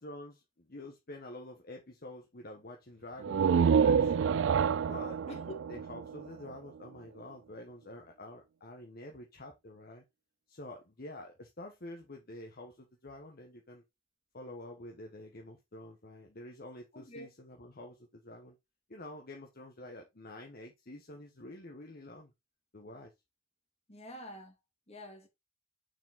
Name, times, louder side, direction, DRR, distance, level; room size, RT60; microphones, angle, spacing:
voice 1, 0.0-4.2 4.9-10.0 10.5-13.8 14.3-18.6 18.9-22.3 22.7-23.1, left 1 dB, 50° left, 1.2 m, -48 dB
sound 1, 3.2-6.9, right 6 dB, 65° right, 0.3 m, -28 dB
voice 2, 5.2-5.6 16.9-17.3 23.9-24.6 24.9-25.3, equal, 30° left, 2.4 m, -46 dB
6.8 x 5.0 x 3.7 m
head